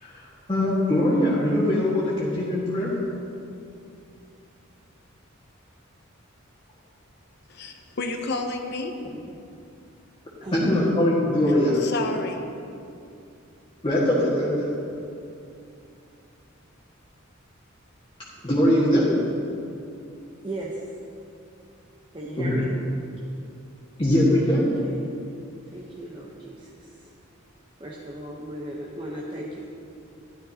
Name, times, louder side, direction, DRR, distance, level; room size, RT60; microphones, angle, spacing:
voice 1, 0.0-3.0 10.5-11.8 13.8-14.7 18.4-19.1 22.4-22.6 24.0-24.7, left 1 dB, 25° left, -9 dB, 1.8 m, -22 dB
voice 2, 7.5-8.9 11.8-12.4, left 3 dB, 55° left, 5 dB, 0.8 m, -30 dB
voice 3, 20.4-20.8 22.1-22.6 24.5-25.1 25.7-27.1 27.8-29.6, right 1 dB, 25° right, -4 dB, 0.9 m, -37 dB
13.0 x 11.5 x 2.9 m, 2.5 s
head